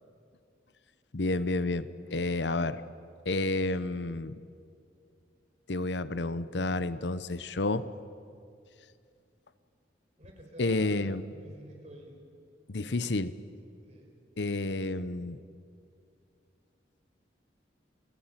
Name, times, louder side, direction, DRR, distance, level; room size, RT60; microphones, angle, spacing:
voice 1, 1.1-2.8 3.2-4.4 5.7-7.9 10.6-11.2 12.7-13.4 14.4-15.4, left 2 dB, 75° left, 14 dB, 0.9 m, -30 dB
voice 2, 10.2-11.0 11.3-12.2 12.8-13.2 13.9-14.1, right 1 dB, 40° right, 2 dB, 5.2 m, -50 dB
28.5 x 18.5 x 9.0 m, 2.4 s
head